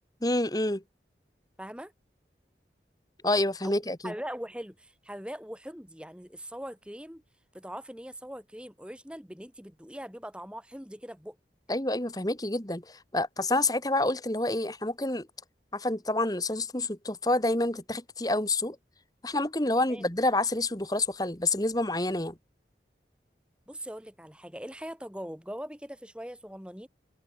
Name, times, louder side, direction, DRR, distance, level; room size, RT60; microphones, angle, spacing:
voice 1, 0.2-0.8 3.2-4.1 11.7-15.3 15.7-18.8 19.2-22.3, left 2 dB, 20° left, 2.0 m, -28 dB
voice 2, 1.6-1.9 3.6-3.8 4.0-7.2 7.5-11.4 19.9-20.1 23.7-26.9, equal, 5° right, 4.1 m, -41 dB
head